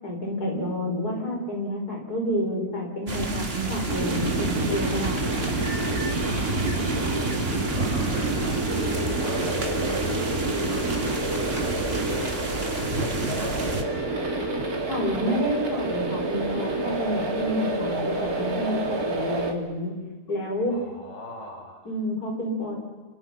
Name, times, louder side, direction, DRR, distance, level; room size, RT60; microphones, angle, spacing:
voice 1, 0.0-5.5 6.6-6.8 14.9-20.0 20.3-20.8 21.8-22.8, left 1 dB, 75° left, 0 dB, 6.2 m, -29 dB
sound 1, 3.1-13.8, right 2 dB, 40° right, 2.3 m, -30 dB
sound 2, 3.9-19.5, right 2 dB, 65° right, 3.2 m, -28 dB
voice 2, 7.7-9.4 9.8-10.2 10.7-13.8 20.3-20.4 20.7-21.9, left 1 dB, 50° left, 0 dB, 4.8 m, -42 dB
28.5 x 27.0 x 5.9 m, 1.3 s
omnidirectional pair, 1.7 m